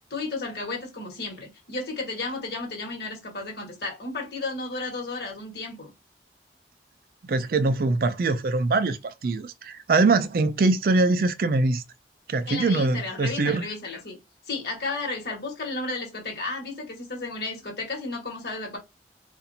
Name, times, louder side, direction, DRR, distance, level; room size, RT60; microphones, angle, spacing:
voice 1, 0.1-5.9 12.5-14.2 14.5-18.8, left 3 dB, 65° left, 1.5 m, -33 dB
voice 2, 7.3-11.8 12.3-13.7, right 3 dB, 55° right, 0.4 m, -23 dB
4.1 x 2.5 x 2.7 m
head